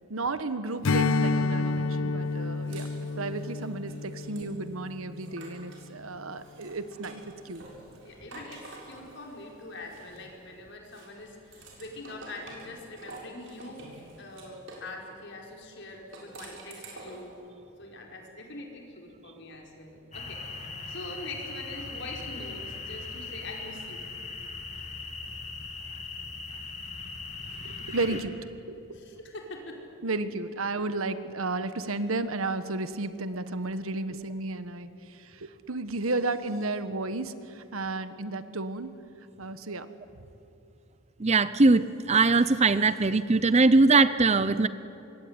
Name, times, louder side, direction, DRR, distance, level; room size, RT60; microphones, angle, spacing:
voice 1, 0.1-2.9 3.2-7.7 27.6-28.9 30.0-38.9 39.4-39.9, right 2 dB, 80° right, 12 dB, 1.4 m, -33 dB
Strum, 0.8-5.6, left 3 dB, 80° left, 0.7 m, -29 dB
sound 1, 2.2-5.9 6.3-10.5 10.9-14.9 15.9-17.3, right 2 dB, 60° right, 7.1 m, -49 dB
voice 2, 8.0-13.9 14.2-17.3 17.8-20.4 20.9-24.1 28.9-29.8, left 2 dB, 60° left, 1 dB, 5.1 m, -43 dB
sound 2, 20.1-28.2, left 3 dB, 35° left, 3.0 m, -39 dB
voice 3, 41.2-44.7, right 3 dB, 30° right, 14 dB, 0.7 m, -21 dB
25.5 x 23.0 x 9.7 m, 2.9 s
head